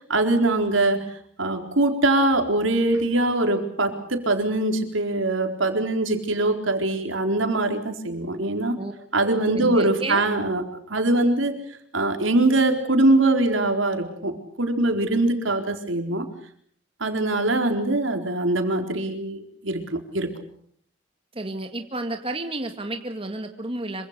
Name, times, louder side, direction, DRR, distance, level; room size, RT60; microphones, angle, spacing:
voice 1, 0.1-1.0 1.4-8.8 9.1-11.6 11.9-16.3 17.0-20.3, right 2 dB, 75° right, 5 dB, 4.2 m, -22 dB
voice 2, 9.2-10.3 21.3-24.1, right 2 dB, 30° right, 5 dB, 1.9 m, -32 dB
26.5 x 25.0 x 6.8 m, 0.63 s
head